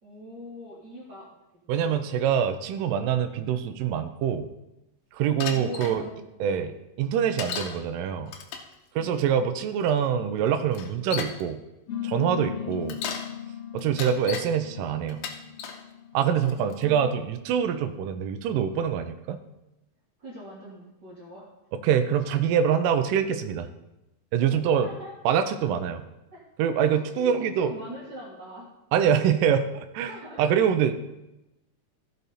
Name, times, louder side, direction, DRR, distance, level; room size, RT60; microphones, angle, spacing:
voice 1, 0.0-1.2 5.4-6.7 9.0-9.4 12.5-12.8 16.5-17.2 20.2-21.5 24.5-25.1 26.3-26.4 26.9-28.7 30.1-30.5, equal, 40° right, -5 dB, 1.8 m, -42 dB
voice 2, 1.7-4.5 5.1-6.0 6.4-6.7 7.0-8.3 9.0-11.6 12.0-13.0 13.7-15.2 16.1-19.4 21.8-23.7 24.3-24.9 25.3-26.0 26.6-27.7 28.9-30.9, right 8 dB, 80° right, 8 dB, 2.2 m, -25 dB
Bicycle, 5.4-6.0 7.4-7.8 8.3-8.7 9.8-9.9 10.7-11.4 12.7-13.3 13.8-14.5 15.1-15.8 16.4-16.8, left 7 dB, 90° left, 2.6 m, -35 dB
sound 1, 11.9-16.8, left 10 dB, 50° left, 2.7 m, -38 dB
15.5 x 5.2 x 4.1 m, 0.95 s
omnidirectional pair, 3.9 m